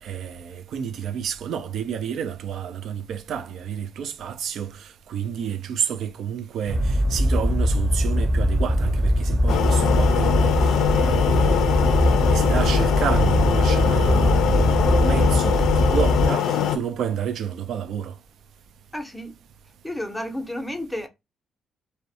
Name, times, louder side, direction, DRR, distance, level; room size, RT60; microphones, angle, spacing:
voice 1, 0.0-11.9 12.3-18.2, right 8 dB, 70° right, 0.3 m, -30 dB
sound 1, 6.7-16.3, equal, 30° right, 0.7 m, -21 dB
sound 2, 9.5-16.8, left 9 dB, 85° left, 0.4 m, -22 dB
voice 2, 18.9-19.3 19.8-21.1, left 1 dB, 5° left, 0.6 m, -31 dB
2.5 x 2.0 x 2.6 m
cardioid pair, 90°, 0 cm